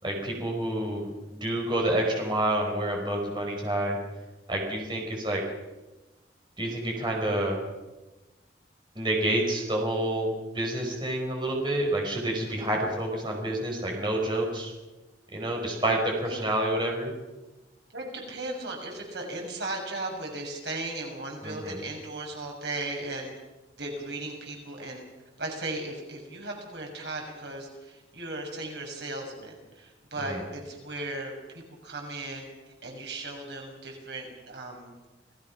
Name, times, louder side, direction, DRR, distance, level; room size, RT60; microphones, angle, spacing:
voice 1, 0.0-4.0 4.5-5.4 6.6-7.6 9.0-14.7 15.3-17.1 21.4-21.8 30.2-30.4, right 1 dB, 25° right, 0 dB, 5.3 m, -28 dB
voice 2, 17.9-23.3 23.8-25.0 25.4-32.5 32.8-34.9, right 2 dB, 75° right, 1 dB, 6.6 m, -36 dB
29.0 x 19.0 x 6.0 m, 1.1 s
head